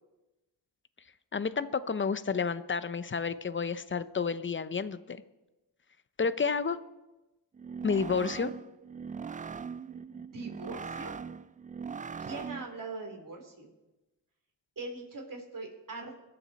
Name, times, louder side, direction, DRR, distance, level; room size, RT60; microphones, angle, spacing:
voice 1, 1.3-5.2 6.2-6.8 7.8-8.5, left 5 dB, 30° left, 14 dB, 0.7 m, -30 dB
sound 1, 7.5-12.8, right 6 dB, 20° right, 0.3 m, -40 dB
voice 2, 10.1-11.1 12.2-13.7 14.8-16.1, right 3 dB, 50° right, 1 dB, 3.5 m, -41 dB
21.5 x 7.1 x 4.2 m, 1.0 s
cardioid pair, 60°, 41 cm